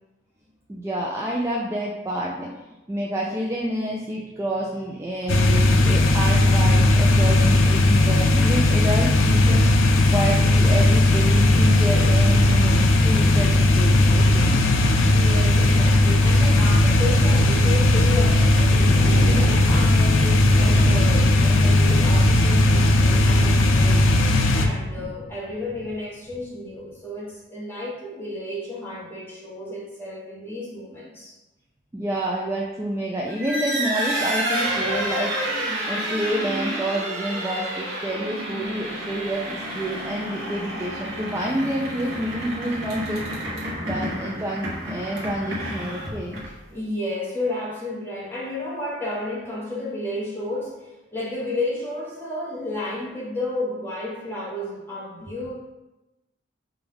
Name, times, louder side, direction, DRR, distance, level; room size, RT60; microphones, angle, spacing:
voice 1, 0.7-2.5 2.9-9.7 10.1-14.7 31.9-43.5 43.9-46.4, right 1 dB, 15° right, -3 dB, 0.3 m, -28 dB
sound 1, 5.3-24.7, left 1 dB, 80° left, 0.5 m, -17 dB
voice 2, 14.8-31.4 43.8-44.0 46.7-55.6, left 1 dB, 10° left, -6 dB, 1.0 m, -32 dB
sound 2, 18.2-26.0 26.2-26.4 26.8-26.9, right 1 dB, 70° right, 0.7 m, -32 dB
sound 3, 33.3-46.7, right 1 dB, 85° right, 1.1 m, -29 dB
5.3 x 2.3 x 3.5 m, 1.0 s
head